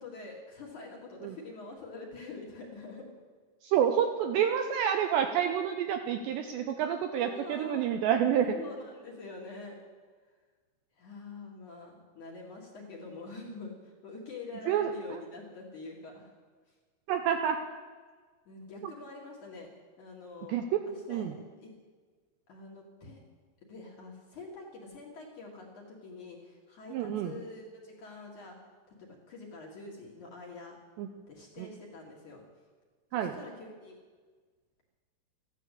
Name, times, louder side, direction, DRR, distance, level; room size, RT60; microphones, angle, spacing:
voice 1, 0.0-3.1 7.1-8.0 8.5-9.8 11.0-16.3 18.5-19.7 20.0-20.6 21.1-21.3 21.6-21.7 22.5-23.2 23.7-28.6 28.9-30.8 31.3-32.4 33.2-34.0, left 3 dB, 50° left, -2 dB, 2.5 m, -46 dB
voice 2, 3.6-8.6 14.7-15.2 17.1-17.6 18.8-18.9 20.5-20.8 21.1-21.4 26.9-27.4 31.0-31.1 31.6-31.7 33.1-33.4, right 9 dB, 85° right, 6 dB, 2.5 m, -29 dB
15.0 x 11.0 x 8.2 m, 1.5 s
omnidirectional pair, 5.7 m